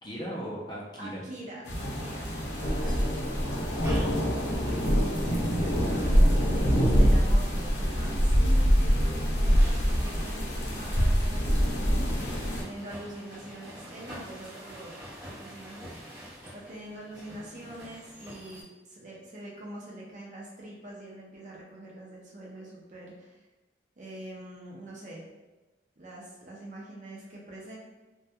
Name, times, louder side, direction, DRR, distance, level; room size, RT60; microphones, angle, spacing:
voice 1, 0.0-1.2 2.6-7.3, equal, 25° left, -5 dB, 0.4 m, -39 dB
voice 2, 1.0-3.2 6.9-16.1 16.5-23.4 24.0-25.2 26.0-27.8, right 1 dB, 40° right, -3 dB, 0.5 m, -44 dB
sound 1, 1.7-12.6, equal, 70° left, 0.6 m, -24 dB
sound 2, 3.6-18.6, equal, 20° right, 0.8 m, -48 dB
2.2 x 2.2 x 2.8 m, 1.1 s
head